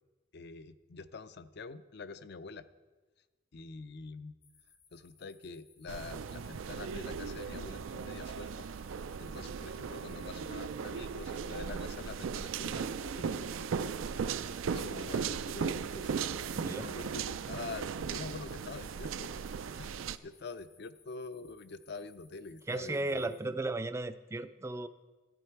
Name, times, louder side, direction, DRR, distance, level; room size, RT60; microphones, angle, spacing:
voice 1, 0.3-2.7 3.5-4.4 4.9-8.7 9.2-13.4 13.8-14.0 14.7-16.1 16.4-19.4 19.7-19.9 20.2-23.6, left 4 dB, 55° left, 13 dB, 0.5 m, -46 dB
sound 1, 4.4-23.4, left 6 dB, 80° left, 2.7 m, -65 dB
sound 2, 5.9-20.2, right 6 dB, 80° right, 0.4 m, -37 dB
voice 2, 16.5-16.9 22.7-24.9, right 2 dB, 15° right, 12 dB, 0.3 m, -35 dB
13.5 x 10.5 x 4.5 m, 1.3 s
head